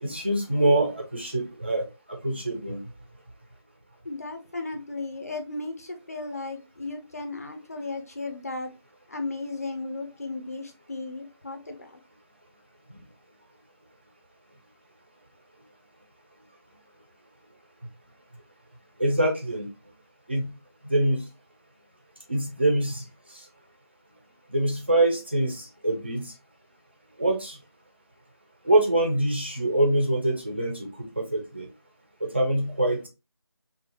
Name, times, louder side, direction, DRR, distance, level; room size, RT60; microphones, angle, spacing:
voice 1, 0.0-2.8 19.0-19.7 20.3-20.5 20.8-21.2 22.3-23.0 24.5-26.3 27.2-27.6 28.7-31.7 32.2-33.1, right 1 dB, 25° right, 0.5 m, -25 dB
voice 2, 4.0-8.7 9.1-12.0, left 3 dB, 35° left, 0.5 m, -35 dB
3.1 x 2.3 x 3.3 m
figure-of-eight pair, 175°, 14 cm